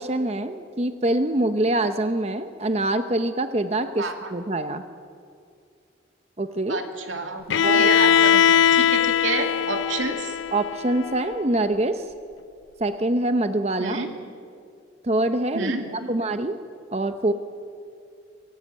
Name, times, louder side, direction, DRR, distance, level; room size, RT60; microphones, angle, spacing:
voice 1, 0.0-4.8 6.4-6.8 7.6-8.0 10.5-12.0 12.8-14.0 15.0-15.7 16.1-16.6 16.9-17.3, right 1 dB, 35° right, 9 dB, 0.8 m, -24 dB
voice 2, 4.0-4.3 6.7-10.3 13.8-14.1 15.5-16.1, right 3 dB, 90° right, 4 dB, 2.6 m, -29 dB
Bowed string instrument, 7.5-11.4, left 8 dB, 85° left, 0.5 m, -20 dB
24.5 x 16.5 x 9.1 m, 2.4 s
head